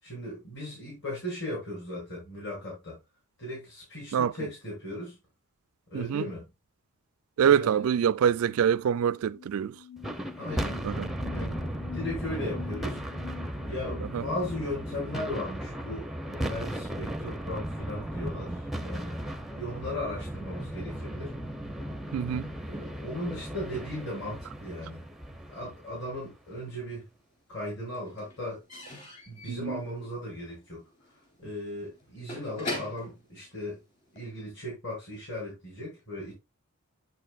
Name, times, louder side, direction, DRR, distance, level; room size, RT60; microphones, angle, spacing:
voice 1, 0.0-3.0 3.4-5.2 5.9-6.4 7.4-7.9 10.4-10.8 11.3-11.6 11.9-13.0 13.7-19.2 19.5-21.3 22.7-25.0 25.5-27.1 27.5-28.6 29.3-30.8 31.4-33.8 34.1-36.3, left 1 dB, 55° left, 6.4 m, -37 dB
voice 2, 5.9-6.2 7.4-9.7 10.8-11.1 22.1-22.5 29.5-29.8, right 8 dB, 75° right, 0.3 m, -25 dB
sound 1, 9.1-14.8, left 9 dB, 70° left, 2.3 m, -46 dB
sound 2, 10.0-26.4, right 1 dB, ahead, 0.5 m, -36 dB
Slam / Squeak / Wood, 26.4-27.3 27.5-34.3, left 2 dB, 35° left, 3.7 m, -42 dB
9.1 x 8.2 x 2.4 m
head